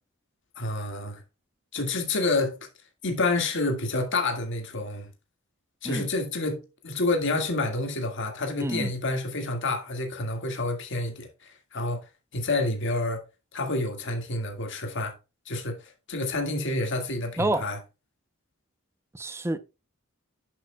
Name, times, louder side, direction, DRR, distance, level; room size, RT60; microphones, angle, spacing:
voice 1, 0.6-1.2 1.7-2.6 3.0-5.1 5.8-11.3 11.7-12.0 12.3-13.2 13.5-15.1 15.5-15.8 16.1-17.8, left 2 dB, 60° left, 1.9 m, -28 dB
voice 2, 8.6-8.9 17.4-17.7 19.1-19.6, right 1 dB, 10° right, 0.6 m, -28 dB
10.5 x 6.6 x 2.2 m
head